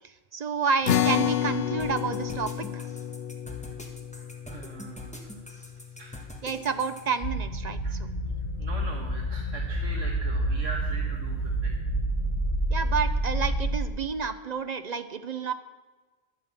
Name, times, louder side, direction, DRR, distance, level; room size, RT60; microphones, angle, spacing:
voice 1, 0.3-2.9 6.4-8.1 12.7-15.5, right 5 dB, 50° right, 10 dB, 0.5 m, -30 dB
sound 1, 0.9-7.5, left 10 dB, 60° left, 0.8 m, -31 dB
sound 2, 1.8-7.0, left 1 dB, 5° left, 1.2 m, -43 dB
voice 2, 4.5-5.3 6.0-6.2 7.8-7.9 8.6-11.8, right 2 dB, 80° right, -1 dB, 1.6 m, -41 dB
sound 3, 7.2-13.9, right 1 dB, 30° left, 1.1 m, -28 dB
10.5 x 9.2 x 7.3 m, 1.3 s
omnidirectional pair, 1.3 m